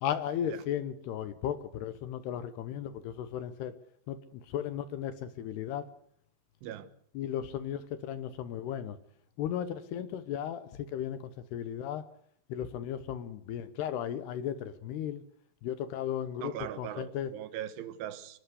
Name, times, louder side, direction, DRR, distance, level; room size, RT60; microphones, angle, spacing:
voice 1, 0.0-3.7 4.1-5.9 7.1-9.0 9.4-12.0 12.5-15.2 15.6-17.3, left 9 dB, 70° left, 2.7 m, -35 dB
voice 2, 16.4-18.4, right 11 dB, 80° right, 3.7 m, -40 dB
29.5 x 12.0 x 8.2 m
omnidirectional pair, 5.4 m